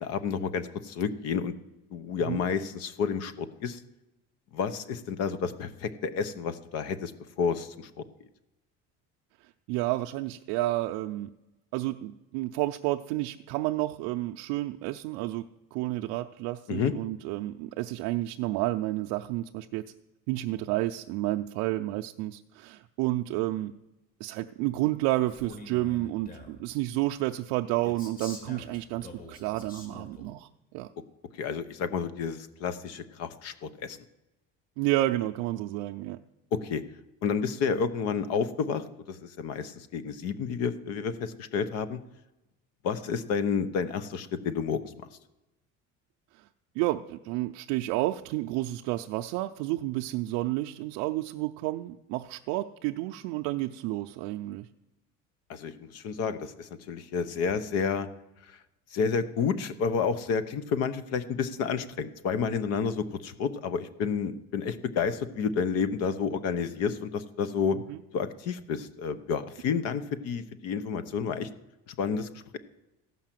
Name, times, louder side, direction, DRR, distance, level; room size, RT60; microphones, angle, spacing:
voice 1, 0.0-1.5 1.9-3.8 4.5-7.1 7.4-7.9 16.7-16.9 31.4-34.0 36.5-36.8 37.2-42.0 42.8-45.1 55.5-58.1 58.9-67.8 68.1-71.5 71.9-72.3, left 6 dB, 60° left, 13 dB, 0.9 m, -30 dB
voice 2, 9.7-11.3 11.7-15.4 15.7-19.8 20.3-23.7 24.2-30.5 30.7-30.9 34.8-36.2 46.8-54.7 67.7-68.0, right 17 dB, 85° right, 5 dB, 0.5 m, -30 dB
Male speech man speaking, 25.3-26.6 27.8-30.3, left 1 dB, 30° left, 2.3 m, -45 dB
15.0 x 5.7 x 7.5 m, 0.98 s
cardioid pair, 150°, 29 cm